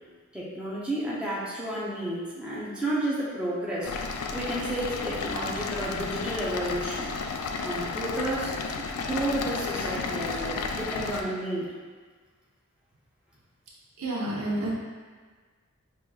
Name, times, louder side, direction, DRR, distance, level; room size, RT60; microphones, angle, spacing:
voice 1, 0.3-3.9 4.3-7.2 7.6-8.5 9.0-11.7, right 1 dB, 5° right, -8 dB, 0.6 m, -31 dB
sound 1, 3.8-11.2, left 4 dB, 85° left, 0.4 m, -32 dB
voice 2, 14.0-14.7, right 1 dB, 75° right, -6 dB, 0.9 m, -29 dB
5.3 x 3.0 x 2.3 m, 1.5 s
head